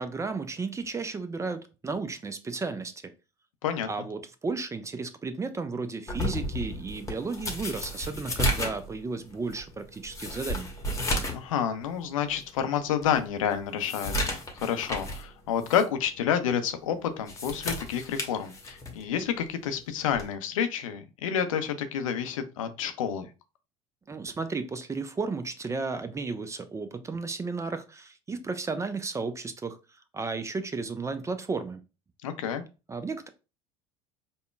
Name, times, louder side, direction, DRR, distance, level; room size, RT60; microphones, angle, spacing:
voice 1, 0.0-3.1 3.9-10.7 24.1-29.8 30.1-31.8 32.9-33.3, right 4 dB, 15° right, 11 dB, 0.5 m, -33 dB
sound 1, 6.1-11.5 11.8-11.9 12.5-12.6 13.0-15.3 15.6-15.8 17.1-19.0 20.1-20.4, left 1 dB, 15° left, 1.0 m, -33 dB
voice 2, 11.3-23.3 32.2-32.6, left 8 dB, 70° left, 8 dB, 0.5 m, -29 dB
5.2 x 2.2 x 2.3 m, 0.30 s
figure-of-eight pair, 65°, 18 cm